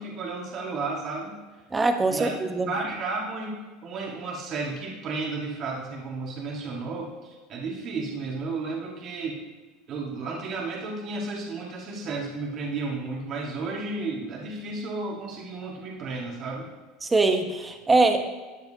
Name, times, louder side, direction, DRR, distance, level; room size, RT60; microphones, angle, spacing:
voice 1, 0.0-1.4 2.1-2.3 2.7-3.6 3.8-9.4 9.9-16.7, right 3 dB, 45° right, -1 dB, 1.8 m, -33 dB
voice 2, 1.7-2.7 17.0-18.2, right 3 dB, 15° right, 6 dB, 1.1 m, -22 dB
12.5 x 7.7 x 2.8 m, 1.3 s
supercardioid pair, 100°, 0 cm